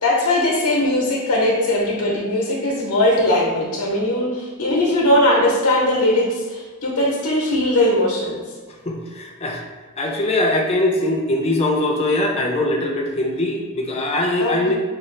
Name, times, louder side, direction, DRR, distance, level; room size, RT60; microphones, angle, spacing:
voice 1, 0.0-8.4 14.4-14.8, left 1 dB, 85° left, -3 dB, 0.8 m, -19 dB
voice 2, 8.7-9.6 10.0-14.8, left 1 dB, 25° left, 0 dB, 0.5 m, -21 dB
5.1 x 2.4 x 3.1 m, 1.4 s
head